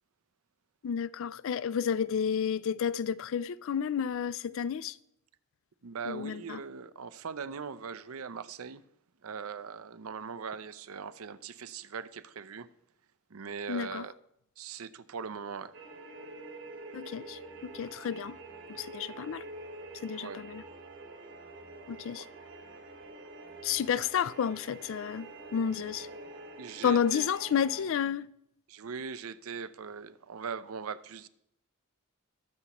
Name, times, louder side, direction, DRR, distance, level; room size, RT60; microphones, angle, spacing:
voice 1, 0.8-5.0 6.1-6.6 13.7-14.1 16.9-18.4 18.7-19.4 20.0-20.6 21.9-22.3 23.6-25.3 25.5-26.1 26.8-28.3, left 7 dB, 60° left, 0.4 m, -31 dB
voice 2, 5.8-8.8 9.2-12.7 13.3-14.1 14.6-15.7 20.2-20.4 22.1-22.2 26.6-27.3 28.7-31.3, right 6 dB, 75° right, 0.6 m, -40 dB
sound 1, 15.7-27.9, right 2 dB, 55° right, 1.3 m, -47 dB
20.5 x 7.0 x 3.0 m
head